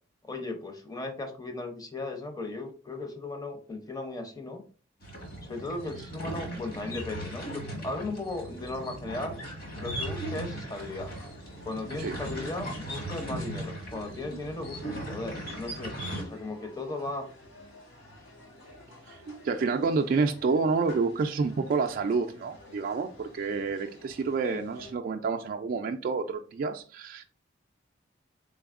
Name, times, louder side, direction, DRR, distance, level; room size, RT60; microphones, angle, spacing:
voice 1, 0.2-4.6 5.5-9.4 9.8-11.1 11.6-17.3 24.4-24.6, left 2 dB, 20° left, 5 dB, 0.6 m, -36 dB
sound 1, 5.0-16.2, right 1 dB, 50° left, 1.3 m, -38 dB
sound 2, 10.8-24.9, left 1 dB, 85° left, 1.4 m, -52 dB
voice 2, 19.1-27.2, right 4 dB, 45° right, 4 dB, 0.3 m, -29 dB
3.8 x 3.4 x 2.4 m, 0.38 s
head